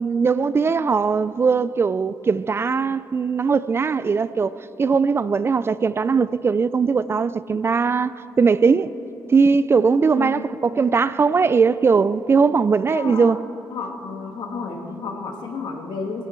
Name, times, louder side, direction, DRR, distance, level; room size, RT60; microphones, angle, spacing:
voice 1, 0.0-8.9 9.3-13.4, right 5 dB, 30° right, 0.3 m, -20 dB
voice 2, 12.9-13.4 13.7-16.3, left 4 dB, 70° left, 2.0 m, -31 dB
18.0 x 16.0 x 4.5 m
cardioid pair, 105°, 8 cm